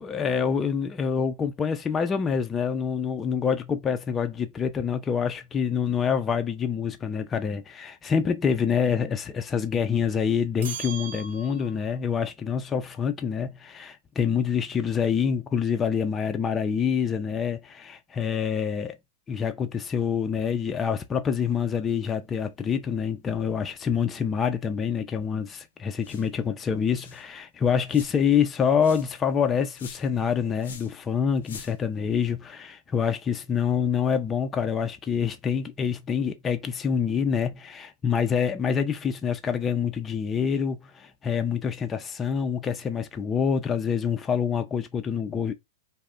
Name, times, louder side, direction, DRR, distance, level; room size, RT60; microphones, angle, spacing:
voice 1, 0.0-19.0 19.3-45.5, left 7 dB, 20° left, 0.4 m, -26 dB
sound 1, 10.6-12.0, right 7 dB, 75° right, 0.6 m, -38 dB
sound 2, 26.0-26.4 26.6-26.7 26.9-27.3 27.9-28.3 28.8-29.2 29.7-30.2 30.6-31.0 31.4-31.9, left 6 dB, 75° left, 0.5 m, -45 dB
2.4 x 2.0 x 3.6 m
hypercardioid pair, 115°, 0 cm